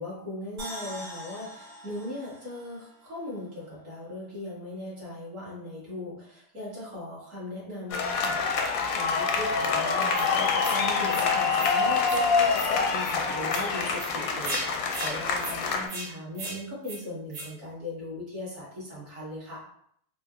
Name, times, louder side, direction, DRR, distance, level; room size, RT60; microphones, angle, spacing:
voice 1, 0.0-19.6, left 1 dB, 40° right, -7 dB, 1.5 m, -39 dB
sound 1, 0.6-3.8 4.1-4.2, equal, 65° right, 1.9 m, -43 dB
sound 2, 7.9-15.9, left 5 dB, 75° left, 1.1 m, -26 dB
sound 3, 10.1-10.3 10.6-10.8 11.1-11.3 11.6-11.7 12.0-12.2 12.5-12.7 13.0-13.2 13.5-13.6 14.0-14.1 14.4-14.6 14.9-15.1 15.4-15.6 15.9-16.1 16.4-16.6 16.8-17.0 17.3-17.5, right 3 dB, 85° right, 1.7 m, -36 dB
3.9 x 2.6 x 2.3 m, 0.68 s
omnidirectional pair, 2.3 m